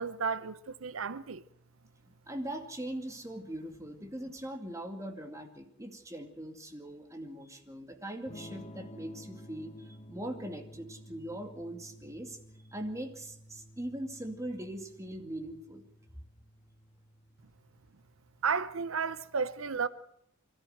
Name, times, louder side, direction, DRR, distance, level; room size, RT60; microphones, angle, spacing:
voice 1, 0.0-1.4 18.4-19.9, right 5 dB, 85° right, 0.8 m, -33 dB
voice 2, 2.3-12.4 12.7-15.8, right 1 dB, 15° right, 2.3 m, -41 dB
Electric guitar / Strum, 8.3-18.0, equal, 30° left, 1.0 m, -52 dB
24.5 x 13.5 x 7.9 m
head